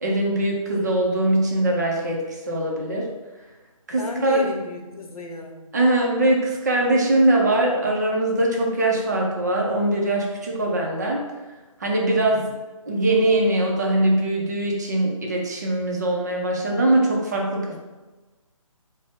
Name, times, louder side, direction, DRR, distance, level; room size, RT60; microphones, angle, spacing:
voice 1, 0.0-3.1 3.9-4.5 5.7-11.2 11.8-12.5 12.9-17.8, right 1 dB, 30° right, -1 dB, 0.4 m, -22 dB
voice 2, 3.9-5.7 12.3-12.5, left 2 dB, 85° left, 3 dB, 0.7 m, -34 dB
3.7 x 2.0 x 3.4 m, 1.2 s
hypercardioid pair, 165°, 18 cm